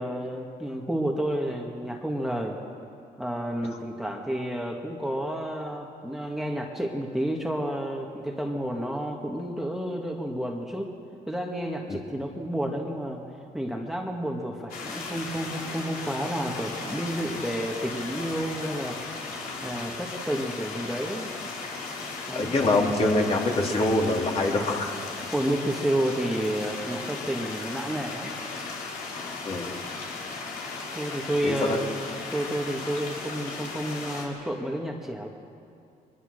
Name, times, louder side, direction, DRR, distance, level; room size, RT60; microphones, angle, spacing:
voice 1, 0.0-2.6 3.2-10.9 11.3-13.2 13.5-19.0 19.6-21.3 22.3-22.6 25.3-28.3 30.9-31.9 32.3-35.3, right 1 dB, ahead, 0 dB, 1.9 m, -30 dB
sound 1, 14.7-34.2, left 4 dB, 75° left, 4.3 m, -36 dB
voice 2, 22.3-24.9 25.2-25.3 29.4-29.7 31.4-31.8, left 2 dB, 40° left, 0 dB, 3.3 m, -24 dB
22.5 x 20.5 x 6.7 m, 2.5 s
cardioid pair, 95°, 15 cm